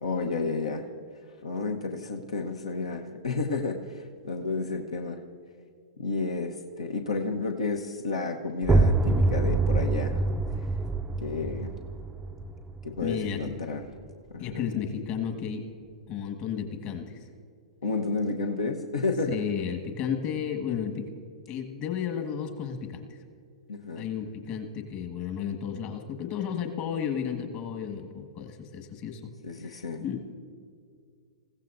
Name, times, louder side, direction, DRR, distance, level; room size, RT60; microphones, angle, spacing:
voice 1, 0.0-0.9 1.4-5.2 6.0-10.2 11.2-11.7 12.8-13.8 14.3-14.6 17.8-19.3 23.7-24.1 29.4-30.0, left 4 dB, 75° left, 3 dB, 1.0 m, -31 dB
sound 1, 8.6-14.2, right 3 dB, 10° right, 0.5 m, -26 dB
voice 2, 13.0-13.4 14.4-15.6 16.1-17.2 19.3-21.1 21.5-23.2 23.9-29.3 29.6-30.3, left 8 dB, 35° left, 4 dB, 1.6 m, -33 dB
27.5 x 15.5 x 2.6 m, 2.1 s
figure-of-eight pair, 110°, 3 cm